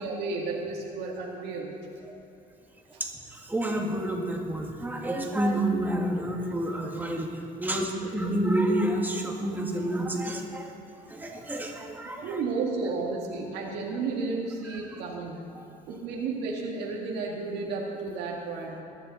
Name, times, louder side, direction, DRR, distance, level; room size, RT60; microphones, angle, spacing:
voice 1, 0.0-1.8 2.9-3.0 12.2-15.4 15.9-18.7, right 4 dB, 90° right, -2 dB, 1.9 m, -32 dB
voice 2, 3.0-10.7 11.1-12.4 14.7-14.9 15.6-15.7, right 1 dB, 10° right, 0 dB, 1.9 m, -29 dB
21.5 x 10.5 x 4.1 m, 3.0 s
cardioid pair, 110°, 17 cm